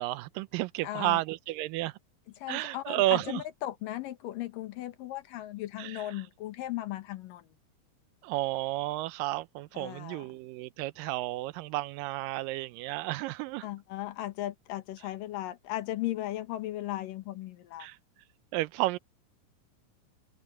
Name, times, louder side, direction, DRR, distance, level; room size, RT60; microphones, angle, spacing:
voice 1, 0.0-1.9 2.5-3.4 5.8-6.0 8.2-13.7 17.8-18.0 18.5-19.0, right 18 dB, 85° right, 2.3 m, -32 dB
voice 2, 0.8-1.2 2.4-7.5 9.7-10.3 13.6-17.9, left 14 dB, 80° left, 2.8 m, -37 dB
omnidirectional pair, 3.9 m